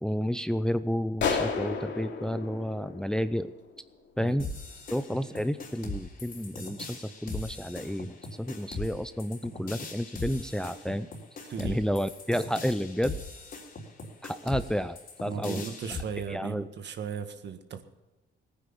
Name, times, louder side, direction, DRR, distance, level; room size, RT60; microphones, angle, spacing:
voice 1, 0.0-3.5 4.2-4.5 4.9-11.1 11.6-13.2 14.2-15.7 16.3-16.7, equal, 5° left, 12 dB, 0.6 m, -31 dB
sound 1, 1.2-3.8, left 5 dB, 65° left, 3.0 m, -32 dB
sound 2, 4.4-16.0, left 3 dB, 45° left, 3.6 m, -40 dB
voice 2, 15.3-17.8, right 7 dB, 60° right, 9 dB, 1.7 m, -37 dB
17.5 x 9.9 x 7.2 m, 1.1 s
cardioid pair, 90°, 20 cm